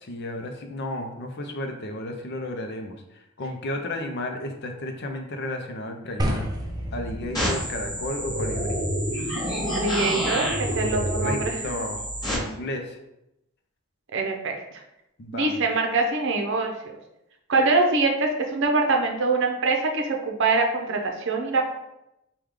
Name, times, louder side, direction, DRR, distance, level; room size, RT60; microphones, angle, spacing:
voice 1, 0.0-6.5 6.9-8.8 10.7-13.0 15.2-15.6, left 1 dB, 55° left, 4 dB, 0.6 m, -33 dB
sound 1, 6.2-12.3, equal, 20° right, 0.4 m, -35 dB
sound 2, 7.3-12.3, equal, 20° left, 1.2 m, -27 dB
voice 2, 9.7-11.6 14.1-14.5 15.3-16.9 17.5-21.8, right 3 dB, 60° right, 2 dB, 0.6 m, -24 dB
4.7 x 2.3 x 3.6 m, 0.86 s
head